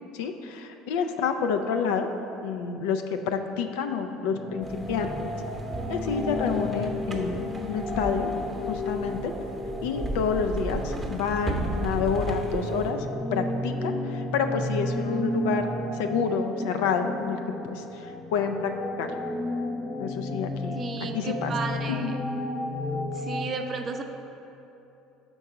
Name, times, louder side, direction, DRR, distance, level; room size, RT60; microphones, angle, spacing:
voice 1, 0.1-2.1 2.4-5.1 5.9-7.4 7.7-8.3 8.7-9.3 9.8-17.4 17.6-18.7 19.0-19.1 20.0-20.8 21.1-21.5 22.0-22.2, left 6 dB, 80° left, 6 dB, 0.4 m, -28 dB
sound 1, 4.3-23.5, left 1 dB, 20° left, 0.6 m, -33 dB
sound 2, 4.6-12.9, right 2 dB, 20° right, 0.9 m, -35 dB
voice 2, 20.7-22.2 22.9-24.0, right 4 dB, 40° right, 5 dB, 0.5 m, -33 dB
5.3 x 3.6 x 5.8 m, 2.9 s
supercardioid pair, 80°, 0 cm